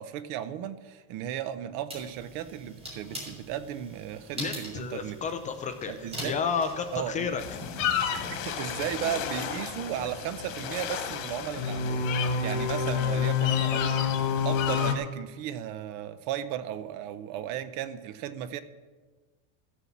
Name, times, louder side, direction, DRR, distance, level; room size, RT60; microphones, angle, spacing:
voice 1, 0.0-5.2 5.9-6.3 6.9-7.3 8.3-18.6, right 10 dB, 50° right, 14 dB, 0.8 m, -35 dB
sound 1, 1.9-9.2, equal, 15° right, 3.6 m, -43 dB
voice 2, 4.4-7.4, left 6 dB, 20° left, 8 dB, 0.5 m, -32 dB
sound 2, 7.4-14.9, left 7 dB, 85° left, 1.7 m, -29 dB
14.5 x 7.1 x 7.2 m, 1.3 s
supercardioid pair, 160°, 39 cm